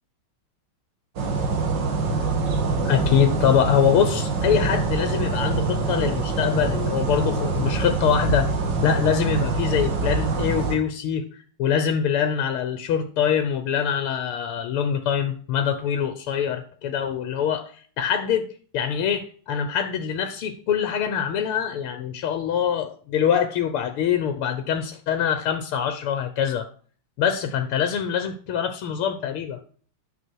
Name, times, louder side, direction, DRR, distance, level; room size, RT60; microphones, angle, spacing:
sound 1, 1.2-10.8, right 4 dB, 55° right, 2.2 m, -25 dB
voice 1, 2.8-8.5 8.8-18.5 18.7-26.7 27.2-29.6, left 8 dB, 90° left, 9 dB, 1.9 m, -24 dB
9.4 x 6.5 x 4.6 m, 0.43 s
omnidirectional pair, 2.3 m